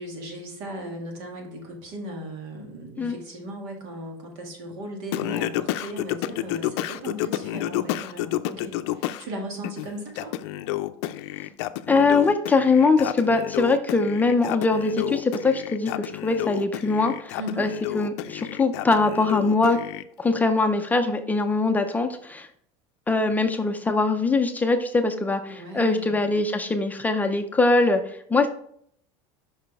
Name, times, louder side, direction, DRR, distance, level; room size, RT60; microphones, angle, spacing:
voice 1, 0.0-10.3 17.4-17.7 25.5-26.1, right 1 dB, 75° right, 1 dB, 2.1 m, -37 dB
Singing, 5.1-9.2 9.6-20.0, left 14 dB, 85° left, 0.4 m, -30 dB
voice 2, 11.9-19.8 20.2-22.5 23.1-28.5, left 3 dB, 10° left, 6 dB, 0.4 m, -22 dB
5.9 x 5.5 x 3.4 m, 0.64 s
cardioid pair, 145°, 14 cm